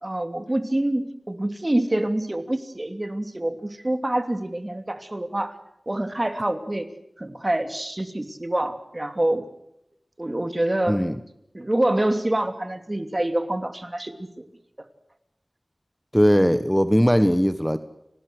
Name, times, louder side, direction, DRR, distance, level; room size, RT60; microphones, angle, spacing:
voice 1, 0.0-5.6 5.9-6.9 7.2-9.4 10.2-11.0 11.5-14.4 14.8-14.9, right 1 dB, 30° right, 9 dB, 2.8 m, -26 dB
voice 2, 16.1-17.8, equal, ahead, 11 dB, 1.4 m, -19 dB
30.0 x 19.5 x 8.0 m, 0.81 s
wide cardioid pair, 50°, 0 cm